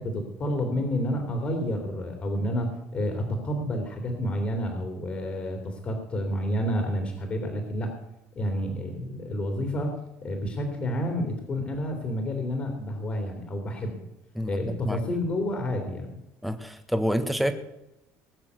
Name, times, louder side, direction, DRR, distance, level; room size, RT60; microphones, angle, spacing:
voice 1, 0.0-7.9 8.3-13.9 14.5-16.2, equal, 30° left, 4 dB, 3.1 m, -29 dB
voice 2, 14.3-15.0 16.4-17.5, equal, ahead, 7 dB, 1.4 m, -28 dB
20.0 x 7.1 x 8.1 m, 0.90 s
cardioid pair, 140°, 5 cm